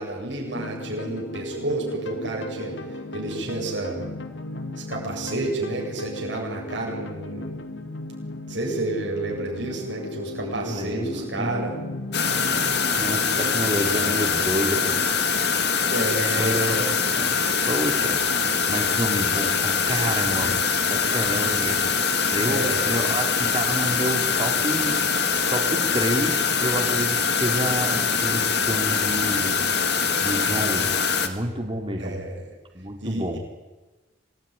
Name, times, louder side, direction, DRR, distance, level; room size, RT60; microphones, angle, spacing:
voice 1, 0.0-2.7 3.1-4.1 4.8-7.5 8.5-11.7 15.8-16.9 22.4-22.8 32.0-32.5 33.0-33.4, right 2 dB, 75° right, -1 dB, 7.9 m, -30 dB
sound 1, 0.5-17.5, left 2 dB, 80° left, 2.5 m, -36 dB
voice 2, 10.4-11.7 13.0-14.9 16.3-17.4 17.7-18.4 18.7-20.6 20.9-22.0 22.3-25.0 25.5-29.6 30.2-30.9 31.2-32.2 32.7-33.4, equal, 30° right, 3 dB, 2.7 m, -29 dB
sound 2, 12.1-31.3, left 5 dB, 60° left, 2.2 m, -23 dB
26.5 x 19.5 x 9.9 m, 1.2 s
head